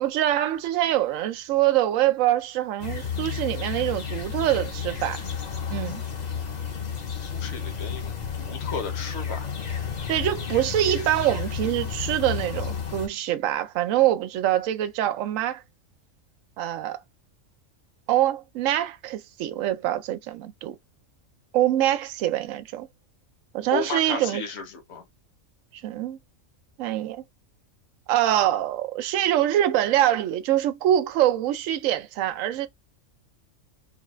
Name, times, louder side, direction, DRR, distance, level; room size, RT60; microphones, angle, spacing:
voice 1, 0.0-5.2 5.7-6.0 10.1-15.6 16.6-17.0 18.1-20.8 21.5-22.9 23.5-24.4 25.8-26.2 26.8-27.2 28.1-32.7, right 12 dB, 80° right, 0.9 m, -24 dB
sound 1, 2.8-13.1, left 7 dB, 40° left, 0.7 m, -32 dB
voice 2, 7.1-9.5 23.7-25.0, left 4 dB, 60° left, 1.2 m, -34 dB
3.6 x 2.4 x 3.1 m
omnidirectional pair, 1.3 m